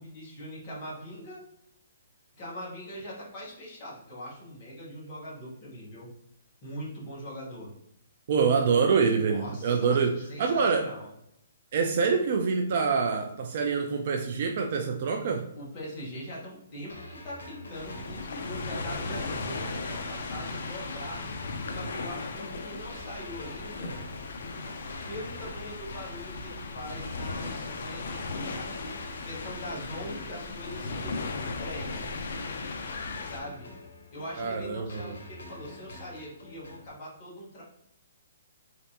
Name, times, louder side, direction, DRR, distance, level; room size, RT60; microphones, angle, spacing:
voice 1, 0.0-1.4 2.3-6.1 6.6-7.7 9.3-11.1 15.5-21.2 21.7-24.0 25.1-28.9 29.2-31.2 31.6-32.0 33.2-33.7 34.1-37.6, equal, 20° left, -7 dB, 1.4 m, -42 dB
voice 2, 8.3-10.9 11.7-15.5 34.4-35.2, right 5 dB, 35° right, 3 dB, 0.4 m, -26 dB
sound 1, 16.9-36.9, left 2 dB, 85° left, 1.0 m, -47 dB
sound 2, 17.7-33.4, left 3 dB, 55° left, 0.5 m, -37 dB
3.9 x 3.3 x 2.8 m, 0.77 s
hypercardioid pair, 175°, 0 cm